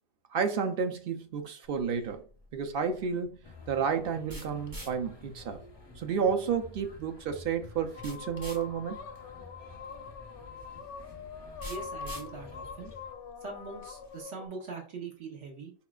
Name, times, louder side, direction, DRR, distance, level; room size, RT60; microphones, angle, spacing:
voice 1, 0.3-2.2 2.5-3.4 3.7-5.6 6.0-9.0, right 6 dB, 60° right, 0.7 m, -31 dB
sound 1, 1.6-14.2, equal, 25° right, 0.5 m, -49 dB
sound 2, 3.4-13.1, left 3 dB, 35° left, 0.4 m, -51 dB
sound 3, 7.9-14.5, left 5 dB, 80° left, 0.9 m, -44 dB
voice 2, 11.6-12.9 13.4-15.7, right 4 dB, 85° right, 1.3 m, -42 dB
5.4 x 2.4 x 2.3 m
omnidirectional pair, 1.2 m